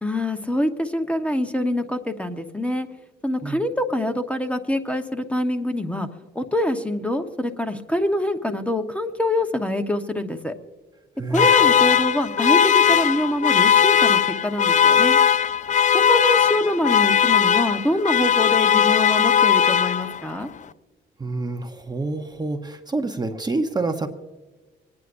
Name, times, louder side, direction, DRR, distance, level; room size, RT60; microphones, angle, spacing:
voice 1, 0.0-2.9 3.2-6.1 6.3-10.5 11.3-15.2 15.9-20.5, left 1 dB, 5° left, 6 dB, 1.0 m, -25 dB
voice 2, 11.2-11.5 21.2-24.1, right 3 dB, 20° right, 5 dB, 0.9 m, -27 dB
sound 1, 11.3-20.4, left 8 dB, 40° left, 0.5 m, -18 dB
25.5 x 9.6 x 2.6 m, 1.3 s
cardioid pair, 90°, 20 cm